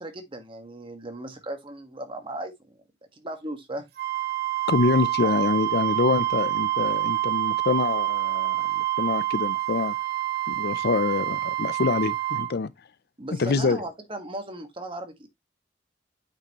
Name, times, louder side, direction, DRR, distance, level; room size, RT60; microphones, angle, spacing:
voice 1, 0.0-2.8 3.2-3.9 5.2-5.3 13.2-15.3, right 1 dB, 30° right, 1.5 m, -37 dB
Wind instrument woodwind instrument, 4.0-12.5, right 15 dB, 55° right, 1.1 m, -27 dB
voice 2, 4.7-9.9 10.5-12.7 13.4-13.8, left 4 dB, 60° left, 0.5 m, -25 dB
8.7 x 5.5 x 3.0 m
head